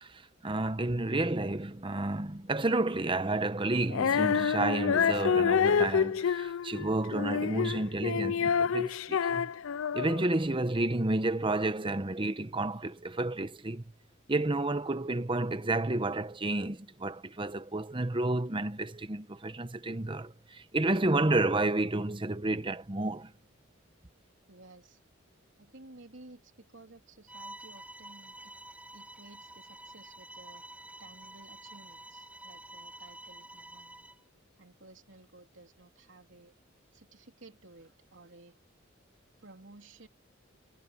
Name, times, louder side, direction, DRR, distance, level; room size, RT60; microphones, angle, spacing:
voice 1, 0.0-9.5 9.9-13.8 14.3-23.3, right 2 dB, 25° right, 0.9 m, -31 dB
Female singing, 3.9-10.3, left 7 dB, 80° left, 0.4 m, -28 dB
voice 2, 24.5-25.0 25.6-28.5 28.9-30.6 31.0-34.1 34.6-36.5 36.9-38.5 39.4-40.1, right 2 dB, 65° right, 3.4 m, -55 dB
Bowed string instrument, 27.3-34.2, right 1 dB, 5° right, 7.2 m, -49 dB
head